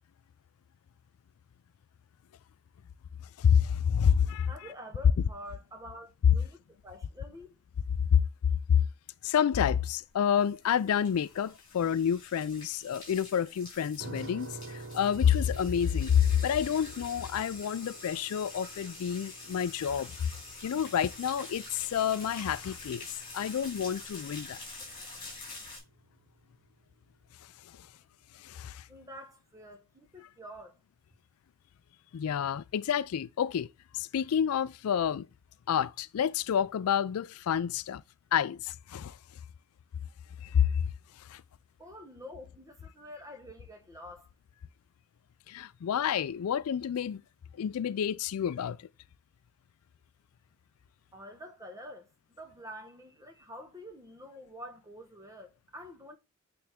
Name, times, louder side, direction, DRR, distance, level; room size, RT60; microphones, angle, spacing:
voice 1, 3.4-4.5 8.1-8.2 8.7-8.8 9.2-20.3 20.6-23.1 23.3-24.6 28.4-28.8 32.1-33.7 33.9-35.3 35.7-38.0 38.3-39.2 40.4-40.8 41.2-41.4 45.5-47.2 47.6-48.9, left 8 dB, 85° left, 0.4 m, -28 dB
voice 2, 4.5-6.6 6.8-7.6 28.9-30.7 41.8-44.3 51.1-56.2, equal, 15° right, 1.1 m, -47 dB
sound 1, 10.1-25.8, left 3 dB, 25° left, 4.1 m, -47 dB
sound 2, 14.0-26.8, right 3 dB, 55° right, 0.8 m, -50 dB
8.7 x 3.4 x 3.5 m
head